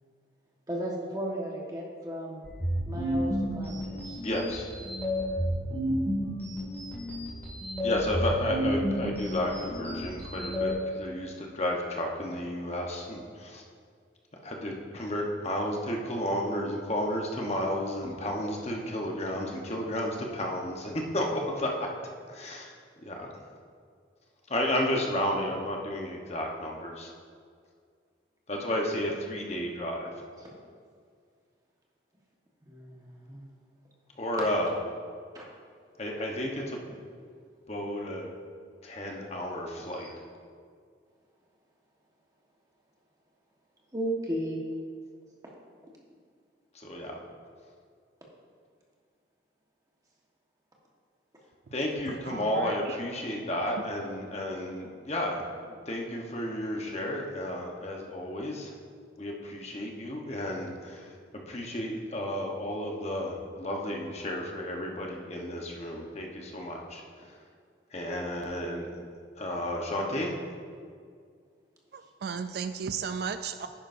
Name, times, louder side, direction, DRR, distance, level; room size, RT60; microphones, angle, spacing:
voice 1, 0.7-2.4 2.9-4.2 32.7-33.4 35.3-35.4 43.9-44.6, right 1 dB, 20° right, -2 dB, 1.4 m, -35 dB
sound 1, 2.4-10.7, equal, 10° left, 2.3 m, -31 dB
voice 2, 4.2-4.7 7.8-13.6 14.4-21.9 22.3-22.7 23.0-23.3 24.5-27.1 28.5-30.1 34.2-34.7 36.0-36.8 37.7-38.3 38.8-40.1 46.7-47.1 51.7-55.4 55.7-58.7 59.2-61.2 61.5-67.3 67.9-68.9 69.4-70.4, left 1 dB, 35° left, 0 dB, 1.1 m, -32 dB
voice 3, 52.2-53.0 71.9-73.7, right 6 dB, 55° right, 9 dB, 0.3 m, -35 dB
10.5 x 9.8 x 2.7 m, 2.1 s
head